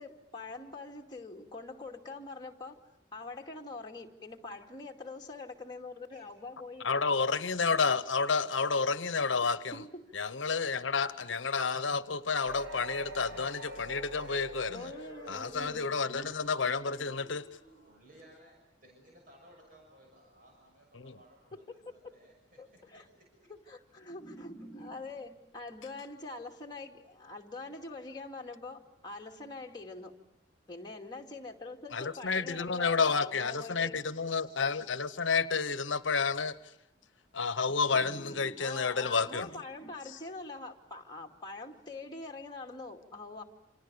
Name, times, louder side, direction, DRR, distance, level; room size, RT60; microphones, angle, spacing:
voice 1, 0.0-2.8 3.1-6.9 9.4-10.1 14.7-15.9 21.5-21.8 22.6-23.0 23.7-30.1 30.7-34.0 37.7-43.4, left 3 dB, 20° left, 2.3 m, -44 dB
voice 2, 6.8-9.8 10.1-14.9 15.3-17.4 21.0-21.1 31.9-36.5 37.3-39.5, left 5 dB, 80° left, 1.0 m, -30 dB
sound 1, 12.4-18.0, equal, 90° right, 3.3 m, -46 dB
voice 3, 17.9-23.5, right 1 dB, 50° right, 6.6 m, -60 dB
29.0 x 27.0 x 6.9 m
head